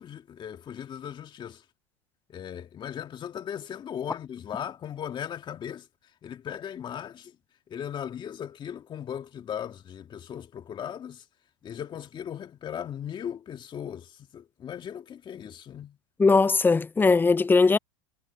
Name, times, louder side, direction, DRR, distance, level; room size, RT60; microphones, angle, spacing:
voice 1, 0.0-1.6 2.3-5.9 6.2-7.4 7.7-11.3 11.6-16.0, left 9 dB, 30° left, 2.3 m, -38 dB
voice 2, 16.2-17.8, left 4 dB, 15° left, 0.6 m, -20 dB
hypercardioid pair, 100°, 15 cm